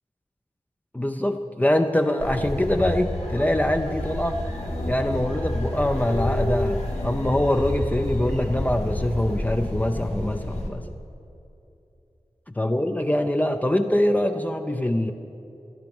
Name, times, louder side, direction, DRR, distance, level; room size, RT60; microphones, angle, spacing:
voice 1, 0.9-4.4 4.9-10.9 12.6-15.1, left 1 dB, 15° left, 5 dB, 0.6 m, -24 dB
sound 1, 2.2-10.7, left 1 dB, 80° left, 1.9 m, -29 dB
13.5 x 10.5 x 6.0 m, 2.8 s
wide cardioid pair, 65°, 11 cm